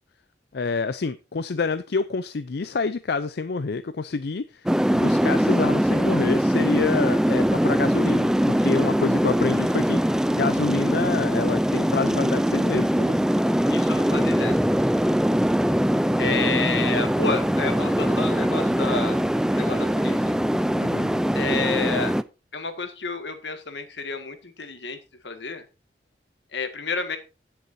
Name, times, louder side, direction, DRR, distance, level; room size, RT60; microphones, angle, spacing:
voice 1, 0.5-13.2 20.8-21.1, left 4 dB, 65° left, 0.5 m, -28 dB
sound 1, 4.7-22.2, equal, 5° right, 0.4 m, -22 dB
voice 2, 13.7-14.6 16.2-19.2 19.5-20.3 21.4-22.1 22.5-25.0 25.2-25.6 26.5-27.2, left 4 dB, 85° left, 1.8 m, -30 dB
16.0 x 7.0 x 2.7 m
head